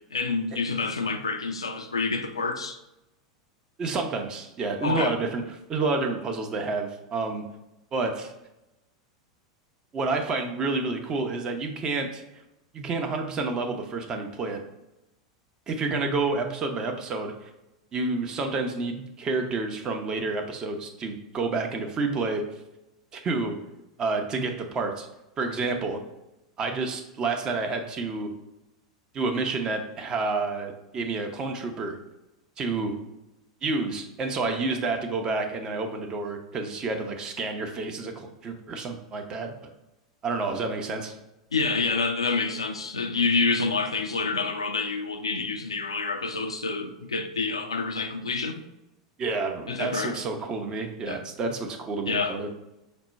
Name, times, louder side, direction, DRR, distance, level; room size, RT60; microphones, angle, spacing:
voice 1, 0.1-2.8 4.8-5.2 41.5-48.6 49.7-50.2 51.1-51.2 52.1-52.4, left 4 dB, 80° left, 6 dB, 0.4 m, -28 dB
voice 2, 3.8-5.4 5.7-7.4 7.9-8.3 9.9-12.2 12.7-14.6 15.7-17.5 17.9-22.4 23.1-23.6 24.0-25.1 25.4-26.0 26.6-28.3 29.1-32.0 32.6-33.0 33.6-39.7 40.2-41.1 49.2-52.5, right 3 dB, 25° right, 4 dB, 0.6 m, -29 dB
5.1 x 2.1 x 4.2 m, 0.92 s
figure-of-eight pair, 85°, 3 cm